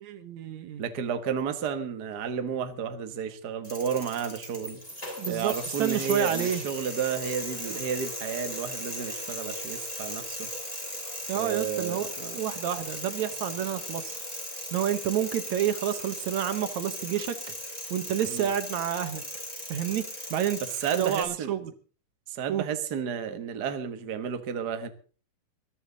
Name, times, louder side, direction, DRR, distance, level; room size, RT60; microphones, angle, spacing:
voice 1, 0.0-0.8 5.2-6.6 11.3-12.1 12.3-14.2 14.7-17.4 17.9-19.4 19.7-20.6 20.9-21.7 22.5-22.7, right 10 dB, 70° right, 10 dB, 2.3 m, -29 dB
voice 2, 0.8-4.8 5.3-10.5 11.3-12.4 18.3-18.5 20.8-21.5 22.3-24.9, right 7 dB, 50° right, 8 dB, 1.3 m, -32 dB
sound 1, 3.6-21.2, equal, 10° left, 6.1 m, -37 dB
21.5 x 12.5 x 4.0 m, 0.39 s
omnidirectional pair, 3.7 m